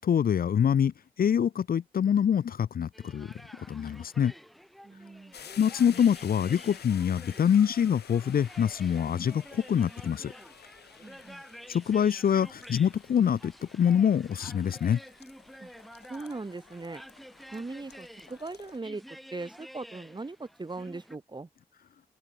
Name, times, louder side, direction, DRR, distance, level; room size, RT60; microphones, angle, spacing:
voice 1, 0.0-4.3 5.6-10.3 11.7-15.0, left 8 dB, 65° left, 0.6 m, -25 dB
sound 1, 2.9-21.2, equal, ahead, 2.2 m, -50 dB
voice 2, 4.8-5.3 11.0-11.4 15.6-15.7 16.1-17.0 17.5-21.5, right 3 dB, 25° right, 1.1 m, -39 dB
sound 2, 5.3-18.8, left 9 dB, 90° left, 2.4 m, -51 dB
open air
cardioid pair, 55°, 16 cm